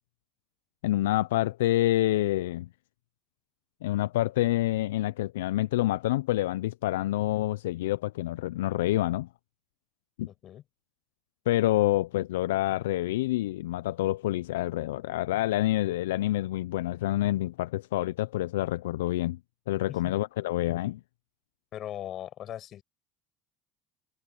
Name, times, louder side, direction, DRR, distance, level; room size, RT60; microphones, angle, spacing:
voice 1, 0.8-2.7 3.8-9.3 10.2-10.3 11.5-19.4 19.7-21.0, left 15 dB, 85° left, 0.4 m, -27 dB
voice 2, 10.3-10.6 19.9-20.1 21.7-22.8, left 11 dB, 55° left, 7.6 m, -39 dB
hypercardioid pair, 80°, 0 cm